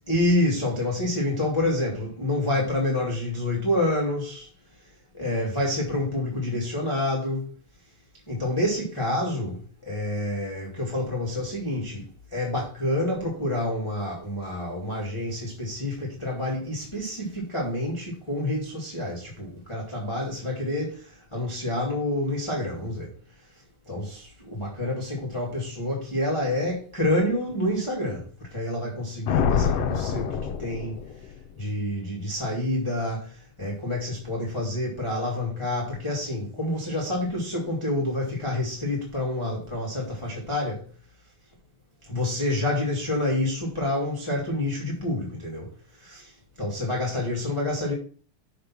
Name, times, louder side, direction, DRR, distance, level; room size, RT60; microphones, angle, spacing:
voice 1, 0.1-4.5 5.1-7.4 8.3-23.1 23.9-31.0 31.6-40.8 42.0-45.7 46.0-46.3 46.6-47.9, left 1 dB, 10° left, 1.8 m, -28 dB
Thunder, 29.3-31.5, left 8 dB, 70° left, 1.6 m, -26 dB
6.6 x 5.3 x 5.9 m
omnidirectional pair, 3.4 m